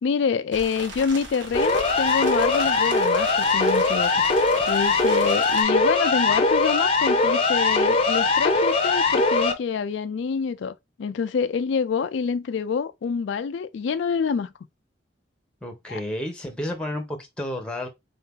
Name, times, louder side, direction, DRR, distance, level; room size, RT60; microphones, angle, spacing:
voice 1, 0.0-4.1 4.7-14.5 15.9-16.0, left 6 dB, 70° left, 0.3 m, -26 dB
sound 1, 0.5-5.6, right 2 dB, 75° right, 1.2 m, -38 dB
Siren, 1.5-9.5, left 3 dB, 30° left, 0.7 m, -21 dB
voice 2, 15.6-17.9, left 1 dB, 5° left, 0.9 m, -31 dB
3.8 x 2.8 x 3.6 m
head